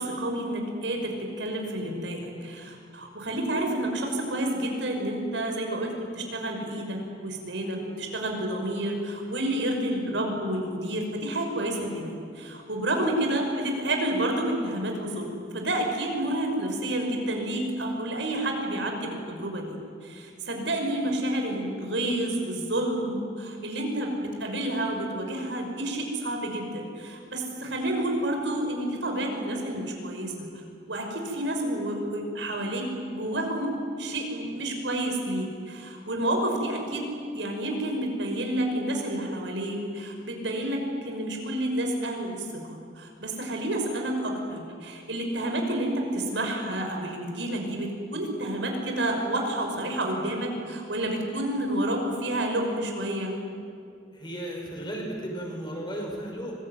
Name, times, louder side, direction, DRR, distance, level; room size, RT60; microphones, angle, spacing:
voice 1, 0.0-19.8 20.0-30.3 30.9-33.7 34.0-37.1 37.3-53.3, right 1 dB, 75° right, 2 dB, 5.7 m, -29 dB
voice 2, 54.1-56.6, right 1 dB, 25° left, 0 dB, 6.2 m, -35 dB
25.0 x 21.5 x 9.7 m, 2.4 s
head